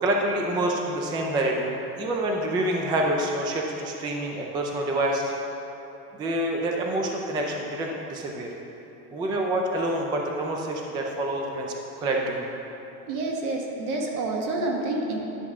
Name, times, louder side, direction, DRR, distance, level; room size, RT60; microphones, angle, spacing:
voice 1, 0.0-5.3 6.1-8.5 9.1-12.5, right 1 dB, 10° right, 0 dB, 0.3 m, -27 dB
voice 2, 13.1-15.2, right 2 dB, 75° right, 0 dB, 1.5 m, -28 dB
10.5 x 6.8 x 3.6 m, 3.0 s
supercardioid pair, 145°, 44 cm